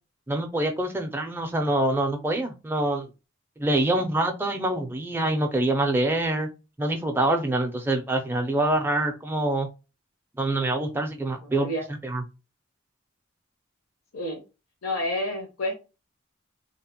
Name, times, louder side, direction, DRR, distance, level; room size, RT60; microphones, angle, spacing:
voice 1, 0.3-3.1 3.6-6.5 6.8-9.7 10.4-11.7 12.0-12.2, right 1 dB, 10° right, 3 dB, 0.4 m, -25 dB
voice 2, 11.4-11.9 14.1-14.4 14.8-15.7, left 1 dB, 85° left, 1 dB, 0.8 m, -29 dB
2.8 x 2.0 x 2.8 m, 0.29 s
head